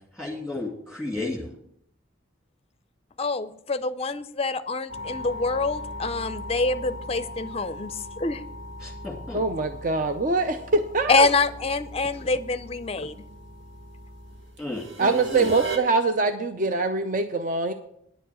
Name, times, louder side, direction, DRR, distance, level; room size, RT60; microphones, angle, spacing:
voice 1, 0.1-1.5 8.8-9.4 14.6-15.5, left 2 dB, 5° right, -1 dB, 2.4 m, -33 dB
voice 2, 3.2-8.4 11.1-13.2, left 3 dB, 30° left, 13 dB, 0.5 m, -26 dB
sound 1, 4.9-15.8, equal, 70° right, 1.5 m, -38 dB
voice 3, 9.3-11.3 15.0-17.7, right 3 dB, 40° right, 8 dB, 0.5 m, -24 dB
10.0 x 7.0 x 7.6 m, 0.73 s
head